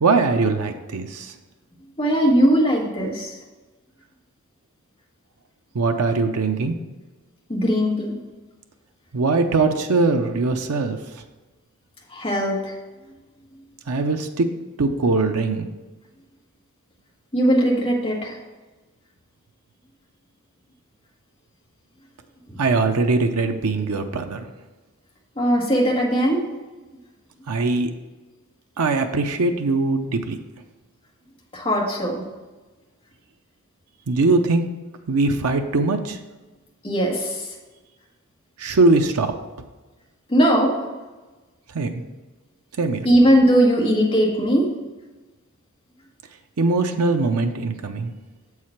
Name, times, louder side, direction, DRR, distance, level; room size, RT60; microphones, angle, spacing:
voice 1, 0.0-1.3 5.7-6.8 9.1-11.0 13.9-14.5 14.8-15.7 22.6-24.5 27.5-27.9 28.8-30.4 34.1-34.6 35.1-36.2 38.6-39.3 41.7-41.9 42.8-43.0 46.6-48.1, right 3 dB, 80° right, 5 dB, 0.6 m, -21 dB
voice 2, 2.0-3.4 7.5-8.1 12.1-12.7 17.3-18.4 22.5-22.6 25.3-26.4 31.5-32.2 36.8-37.5 40.3-40.7 43.0-44.7, equal, 25° left, -3 dB, 1.6 m, -19 dB
7.3 x 4.8 x 5.7 m, 1.2 s
head